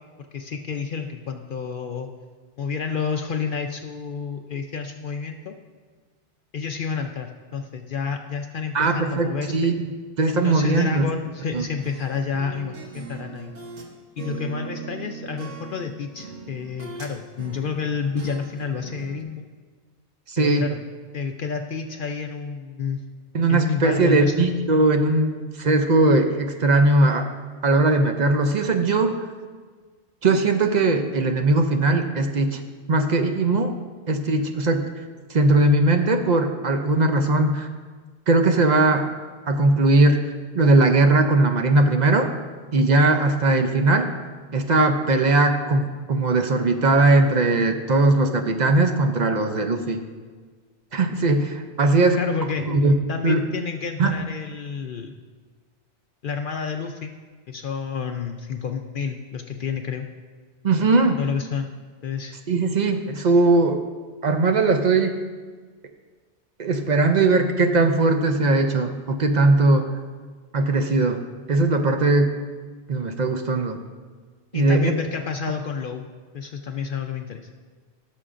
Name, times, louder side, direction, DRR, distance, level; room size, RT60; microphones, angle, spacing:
voice 1, 0.3-2.1 2.6-5.6 6.5-9.7 10.3-13.5 14.2-19.5 20.4-20.8 21.1-23.0 23.5-24.3 52.1-52.6 53.1-55.2 56.2-57.1 57.5-60.0 61.2-61.7 62.0-62.4 74.5-76.0 76.3-77.5, left 6 dB, 60° left, 5 dB, 0.6 m, -29 dB
voice 2, 8.7-9.9 10.2-11.0 11.5-11.7 20.3-20.7 23.3-27.3 27.6-29.3 30.2-32.6 32.9-33.7 34.1-34.9 35.3-37.7 38.3-39.1 39.5-42.3 42.7-44.1 44.5-50.0 50.9-52.2 52.6-52.9 53.2-53.5 54.0-54.1 60.6-61.2 62.5-63.8 64.2-65.2 66.6-69.9 70.5-72.3 72.9-73.8 74.5-74.9, right 2 dB, 50° right, 6 dB, 0.6 m, -19 dB
sound 1, 11.8-13.9 14.2-17.1 17.4-19.2, right 4 dB, 85° right, 1.4 m, -39 dB
16.0 x 6.8 x 2.5 m, 1.5 s
omnidirectional pair, 1.2 m